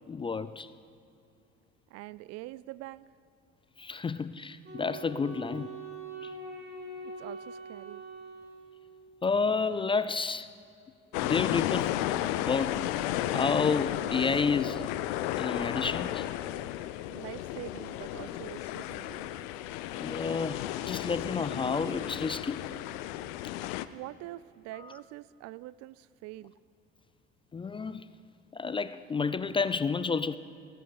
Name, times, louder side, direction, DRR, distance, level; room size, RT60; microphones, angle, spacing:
voice 1, 0.1-0.7 3.8-5.7 6.2-6.3 9.2-10.5 11.2-12.0 12.4-12.9 13.3-14.9 15.4-16.3 20.0-22.6 27.5-28.1 28.5-30.4, left 4 dB, 15° left, 0.4 m, -30 dB
voice 2, 1.9-3.1 7.0-8.0 17.1-19.4 23.9-26.5, right 17 dB, 50° right, 0.4 m, -44 dB
Wind instrument woodwind instrument, 4.6-9.1, right 3 dB, 30° right, 3.4 m, -43 dB
sound 1, 11.1-23.9, left 14 dB, 65° left, 0.6 m, -33 dB
16.5 x 15.5 x 4.0 m
figure-of-eight pair, 60°, 33 cm